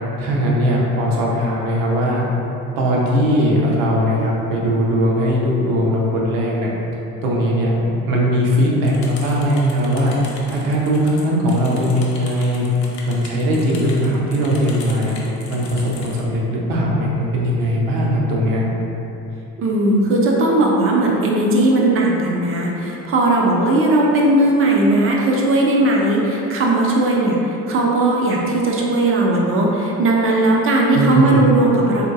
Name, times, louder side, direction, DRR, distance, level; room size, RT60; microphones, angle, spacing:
voice 1, 0.2-2.4 2.8-6.7 7.2-10.1 10.5-12.7 13.1-15.1 15.5-18.7 30.9-31.4, equal, 65° right, -3 dB, 0.8 m, -19 dB
sound 1, 8.8-16.2, left 3 dB, 85° left, 0.6 m, -39 dB
voice 2, 19.6-32.1, right 2 dB, 30° right, -2 dB, 0.5 m, -17 dB
3.6 x 2.7 x 2.5 m, 3.0 s
figure-of-eight pair, 65°, 49 cm